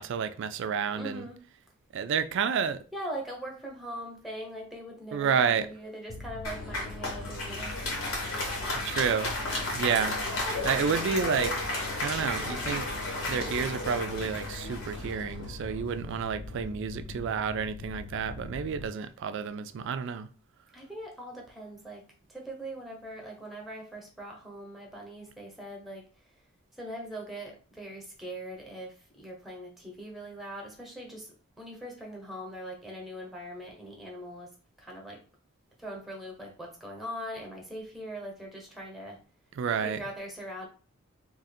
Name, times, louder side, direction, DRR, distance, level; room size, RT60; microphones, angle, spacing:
voice 1, 0.0-1.2 1.9-2.8 5.1-5.7 8.8-9.4 9.7-10.2 10.6-11.7 12.0-12.9 13.3-20.3 39.6-40.0, right 6 dB, 60° right, 0.3 m, -30 dB
voice 2, 0.9-1.4 2.9-7.7 20.7-22.0 22.3-26.0 26.7-31.3 31.6-34.5 34.8-35.2 35.8-39.2 39.8-40.7, equal, ahead, 0.9 m, -41 dB
Mechanical fan, 6.1-18.9, left 3 dB, 35° left, 0.5 m, -42 dB
Applause, 6.4-15.8, left 2 dB, 75° left, 1.2 m, -33 dB
2.9 x 2.5 x 4.2 m
head